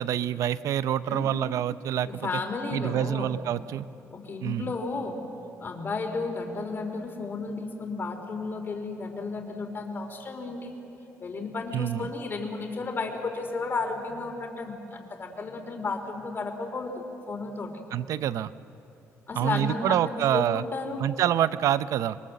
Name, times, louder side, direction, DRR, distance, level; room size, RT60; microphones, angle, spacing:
voice 1, 0.0-2.1 2.7-3.8 4.4-4.7 11.7-12.1 17.9-18.5 19.4-20.6 21.0-22.2, right 11 dB, 75° right, 15 dB, 0.6 m, -26 dB
voice 2, 1.0-1.5 2.1-3.3 4.1-5.2 5.6-10.7 11.2-16.9 17.3-17.7 19.3-21.0, left 3 dB, 40° left, 4 dB, 3.6 m, -33 dB
27.0 x 22.0 x 7.6 m, 2.9 s
cardioid pair, 105°, 6 cm